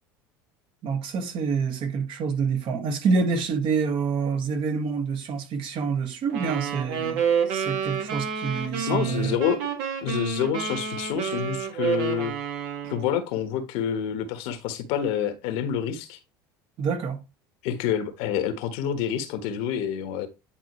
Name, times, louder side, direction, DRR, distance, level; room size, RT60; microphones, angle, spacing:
voice 1, 0.8-9.4 16.8-17.2, right 5 dB, 50° right, 1.9 m, -27 dB
sound 1, 6.3-13.1, right 7 dB, 65° right, 2.2 m, -29 dB
voice 2, 8.9-9.6 10.0-12.3 12.9-16.2 17.6-20.3, left 9 dB, 65° left, 1.4 m, -27 dB
9.9 x 4.1 x 3.2 m
hypercardioid pair, 75°, 11 cm